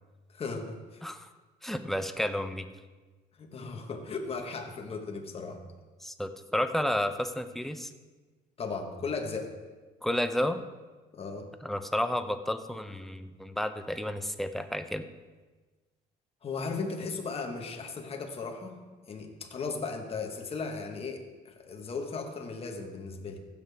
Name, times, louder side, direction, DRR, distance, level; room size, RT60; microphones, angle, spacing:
voice 1, 0.3-1.0 3.4-5.6 8.6-9.5 11.1-11.5 16.4-18.8 19.1-23.4, left 4 dB, 35° left, 3 dB, 1.4 m, -36 dB
voice 2, 1.6-2.7 6.0-7.9 10.0-10.6 11.6-15.1, left 1 dB, ahead, 9 dB, 0.6 m, -31 dB
15.5 x 6.8 x 3.5 m, 1.3 s
cardioid pair, 110°, 17 cm